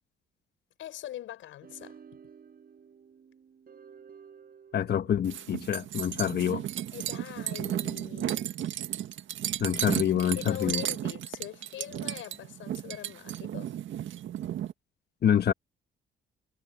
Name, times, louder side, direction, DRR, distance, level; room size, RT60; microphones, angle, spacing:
voice 1, 0.8-2.0 6.9-8.4 10.3-13.7, left 12 dB, 80° left, 6.8 m, -42 dB
sound 1, 1.6-6.7, right 7 dB, 50° right, 6.9 m, -53 dB
voice 2, 4.7-6.6 9.6-10.8 15.2-15.5, left 9 dB, 55° left, 1.3 m, -26 dB
sound 2, 5.2-14.7, right 11 dB, 75° right, 1.8 m, -34 dB
cardioid pair, 90°, 20 cm